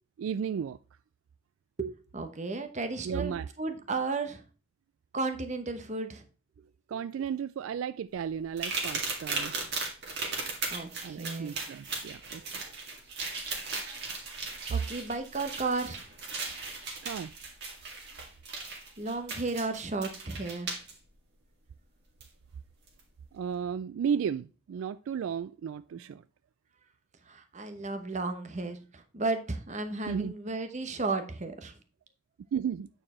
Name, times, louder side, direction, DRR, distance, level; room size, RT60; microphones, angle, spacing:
voice 1, 0.2-0.8 3.0-3.5 6.9-9.5 11.0-12.6 17.0-17.3 23.3-26.2 30.1-30.3 32.5-32.9, right 7 dB, 75° right, 0.3 m, -34 dB
voice 2, 1.8-4.4 5.1-6.2 10.7-11.6 14.7-16.1 19.0-20.7 27.3-31.7, right 3 dB, 35° right, 1.0 m, -34 dB
sound 1, 8.6-20.9 22.2-22.3 22.9-23.0, right 4 dB, 55° right, 2.1 m, -37 dB
8.7 x 4.7 x 4.3 m
head